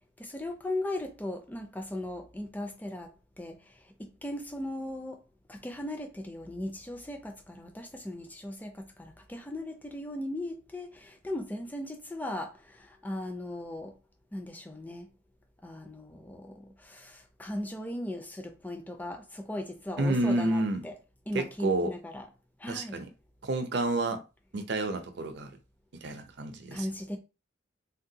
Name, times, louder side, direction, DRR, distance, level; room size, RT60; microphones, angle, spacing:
voice 1, 0.2-3.7 4.0-5.2 5.5-13.9 14.3-15.1 15.6-20.9 21.3-22.3 22.6-23.0 26.7-27.2, left 1 dB, 10° left, 0.4 m, -38 dB
voice 2, 20.0-20.8 21.3-21.9 22.7-23.1 23.4-24.2 24.5-25.5 26.0-26.9, right 2 dB, 55° right, 0.5 m, -29 dB
3.5 x 2.2 x 2.7 m
head